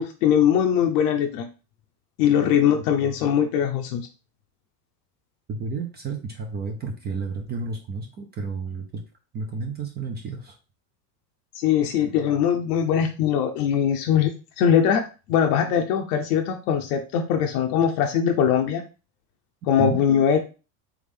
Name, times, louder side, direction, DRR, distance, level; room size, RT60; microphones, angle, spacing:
voice 1, 0.0-1.5 2.2-4.1 11.5-18.8 19.7-20.4, left 8 dB, 65° left, 4 dB, 0.8 m, -21 dB
voice 2, 5.5-9.0 9.3-10.5 19.8-20.0, right 4 dB, 20° right, 2 dB, 0.4 m, -31 dB
3.7 x 3.5 x 3.5 m, 0.32 s
supercardioid pair, 125°, 48 cm